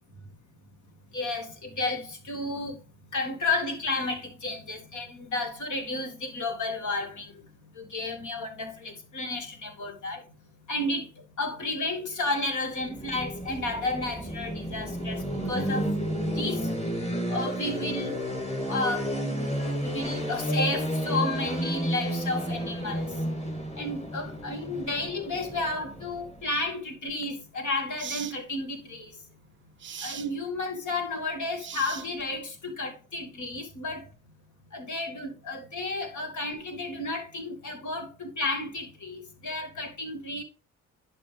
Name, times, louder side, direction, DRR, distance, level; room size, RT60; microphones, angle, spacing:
voice 1, 1.1-2.8 3.1-7.4 7.7-10.2 10.7-16.0 16.3-16.7 17.3-18.1 18.7-23.2 23.8-29.2 30.0-34.1 34.7-40.4, left 2 dB, 45° left, 2.3 m, -32 dB
sound 1, 12.8-26.7, equal, 15° left, 2.8 m, -32 dB
sound 2, 27.1-27.2 28.0-28.4 29.8-30.3 31.6-32.4, right 8 dB, 30° right, 0.6 m, -39 dB
10.5 x 5.6 x 3.4 m
hypercardioid pair, 45°, 41 cm